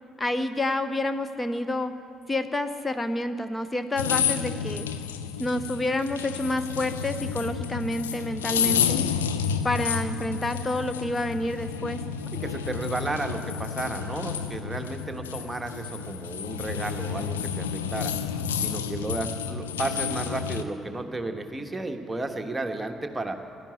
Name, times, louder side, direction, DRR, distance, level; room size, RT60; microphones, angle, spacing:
voice 1, 0.2-1.9 2.3-4.9 5.4-9.1 9.6-12.0, left 1 dB, 20° left, 10 dB, 0.7 m, -28 dB
sound 1, 4.0-20.6, left 7 dB, 80° left, 0.5 m, -30 dB
voice 2, 12.4-18.1 18.6-23.3, right 2 dB, 15° right, 4 dB, 1.3 m, -33 dB
12.0 x 10.5 x 9.8 m, 2.5 s
figure-of-eight pair, 45°, 0 cm